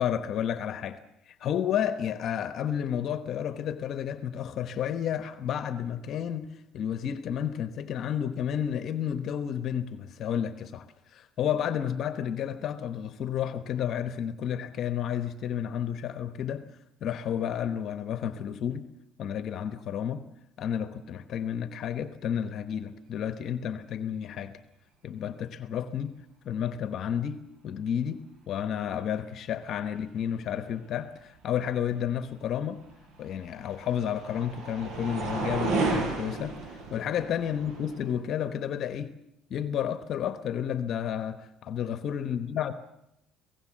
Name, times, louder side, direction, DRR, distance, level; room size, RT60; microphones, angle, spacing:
voice 1, 0.0-16.7 17.0-18.9 19.2-20.2 20.6-24.6 25.0-26.1 26.4-32.8 33.2-39.1 39.5-42.7, left 9 dB, 55° left, 1.0 m, -31 dB
sound 1, 32.8-38.1, right 3 dB, 60° right, 5.5 m, -33 dB
25.5 x 17.5 x 7.5 m
cardioid pair, 110°, 0 cm